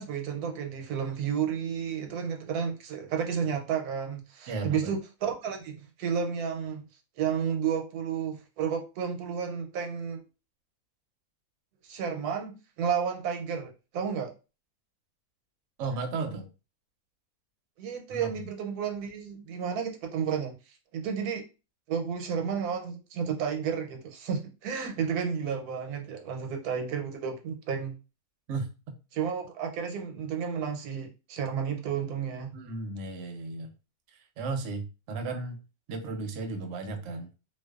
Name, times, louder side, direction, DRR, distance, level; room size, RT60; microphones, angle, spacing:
voice 1, 0.0-6.8 7.2-10.2 11.8-14.3 17.8-21.4 21.9-28.0 29.1-32.5, right 7 dB, 85° right, 1.1 m, -32 dB
voice 2, 4.5-5.0 15.8-16.5 18.1-18.3 28.5-28.7 32.5-33.7 34.1-35.6 35.9-37.3, right 3 dB, 65° right, 0.8 m, -34 dB
2.4 x 2.2 x 2.3 m
omnidirectional pair, 1.6 m